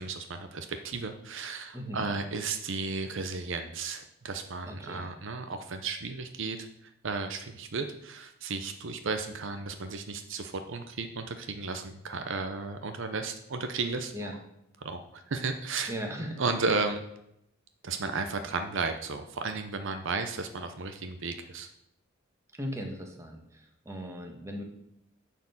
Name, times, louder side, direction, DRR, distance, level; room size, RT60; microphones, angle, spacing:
voice 1, 0.0-14.4 14.8-15.9 16.4-17.0 17.8-21.7, right 4 dB, 65° right, 7 dB, 0.7 m, -34 dB
voice 2, 1.7-2.1 4.7-5.1 14.1-14.4 15.9-16.4 22.6-24.6, equal, 15° right, 2 dB, 1.4 m, -38 dB
10.0 x 4.5 x 7.1 m, 0.80 s
head